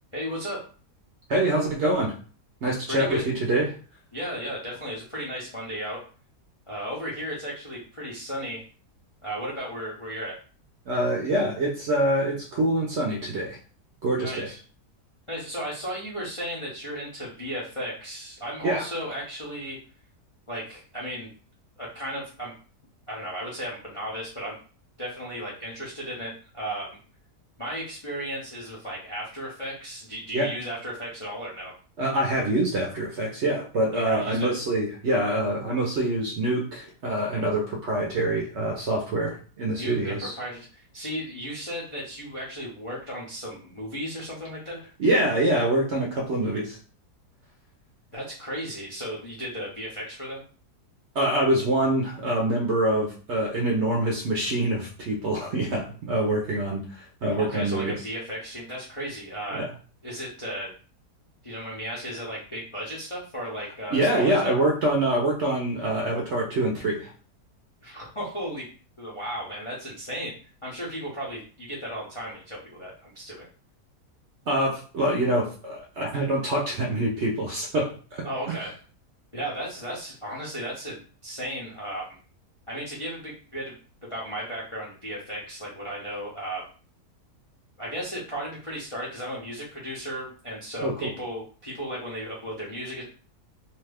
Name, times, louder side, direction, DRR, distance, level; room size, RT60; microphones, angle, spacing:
voice 1, 0.1-0.7 2.9-3.2 4.1-6.0 6.7-8.6 9.2-10.3 14.2-14.6 15.3-19.8 20.5-21.3 21.8-22.5 23.1-24.6 25.0-27.0 27.6-31.7 33.9-34.5 39.7-44.9 48.1-50.4 57.3-59.7 60.0-60.7 61.4-64.5 67.8-68.7 69.0-70.3 70.6-73.5 78.2-78.7 79.3-82.2 82.7-83.8 84.1-86.6 87.8-93.0, equal, 40° left, -6 dB, 0.4 m, -35 dB
voice 2, 1.3-2.2 2.6-3.7 10.9-13.6 14.0-14.5 18.6-18.8 30.3-30.5 32.0-40.3 45.0-46.8 51.1-58.0 59.5-59.7 63.9-67.1 74.5-78.5 90.8-91.1, right 1 dB, 60° right, -1 dB, 0.8 m, -25 dB
2.8 x 2.3 x 3.3 m, 0.39 s
omnidirectional pair, 1.7 m